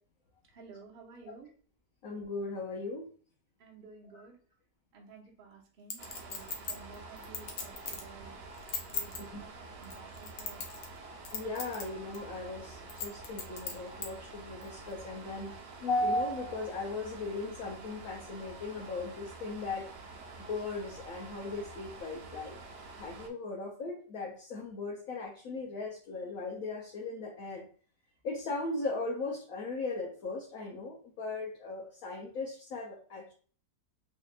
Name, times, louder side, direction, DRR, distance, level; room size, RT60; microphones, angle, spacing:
voice 1, 0.5-1.5 3.6-4.4 4.9-8.4 8.9-10.7, right 5 dB, 40° right, -2 dB, 0.9 m, -53 dB
voice 2, 2.0-3.1 4.1-4.2 9.3-9.4 11.3-15.5 15.8-19.8 20.4-22.6 23.0-27.6 28.2-33.3, left 2 dB, 65° left, -3 dB, 1.1 m, -37 dB
Chink clink, 5.9-8.1 8.5-9.2 9.8-11.0 11.2-11.8 12.1-12.2 12.9-14.1 14.6-14.7, left 5 dB, 85° left, 1.3 m, -37 dB
sound 1, 6.0-23.3, right 3 dB, 90° right, 1.3 m, -48 dB
3.6 x 3.2 x 2.4 m, 0.42 s
omnidirectional pair, 1.8 m